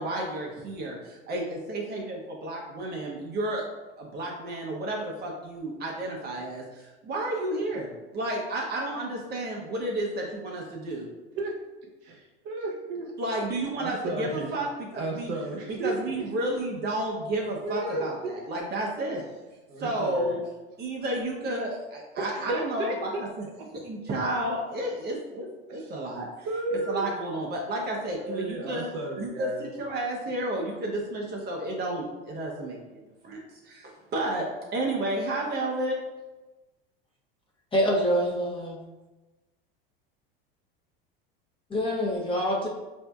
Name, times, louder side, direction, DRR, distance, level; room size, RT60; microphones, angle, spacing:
voice 1, 0.0-3.6 4.0-11.1 13.2-15.3 15.7-19.2 19.8-20.4 20.8-23.4 23.8-28.9 29.2-34.4 34.7-36.0, right 1 dB, 35° right, -2 dB, 0.6 m, -32 dB
voice 2, 12.0-13.1 13.7-14.5 14.9-16.3 17.6-18.4 19.7-20.4 22.2-23.0 25.7-25.9 26.5-27.1 28.2-29.7, right 2 dB, 60° right, 0 dB, 0.9 m, -33 dB
voice 3, 37.7-38.8 41.7-42.7, equal, 15° left, -3 dB, 0.8 m, -25 dB
4.2 x 2.6 x 2.3 m, 1.1 s
supercardioid pair, 110°, 30 cm